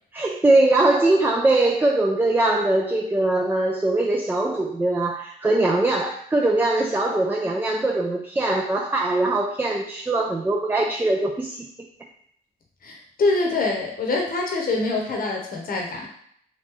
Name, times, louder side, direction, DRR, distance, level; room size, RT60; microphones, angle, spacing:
voice 1, 0.1-11.7, right 2 dB, 10° right, 0 dB, 0.4 m, -21 dB
voice 2, 12.8-16.1, left 3 dB, 45° left, 0 dB, 0.9 m, -25 dB
3.0 x 2.6 x 3.6 m, 0.66 s
cardioid pair, 90°, 20 cm